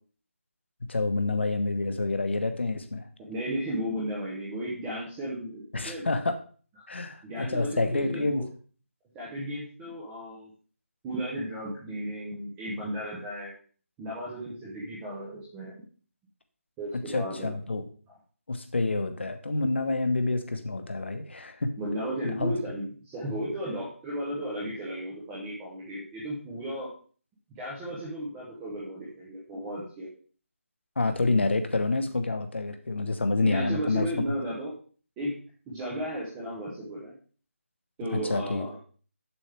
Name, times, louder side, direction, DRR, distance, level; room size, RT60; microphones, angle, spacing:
voice 1, 0.9-3.1 5.7-6.4 6.9-8.4 17.1-17.8 18.5-21.7 22.2-22.5 31.0-34.1 38.1-38.6, left 3 dB, 55° left, 7 dB, 1.2 m, -28 dB
voice 2, 3.2-6.1 7.2-8.4 9.1-10.5 11.0-13.5 14.0-15.7 16.8-17.5 21.8-26.9 27.6-30.1 33.4-34.7 35.2-35.3 35.7-37.1 38.0-38.7, right 1 dB, 5° right, -6 dB, 0.7 m, -34 dB
7.3 x 7.0 x 3.4 m, 0.41 s
figure-of-eight pair, 175°, 8 cm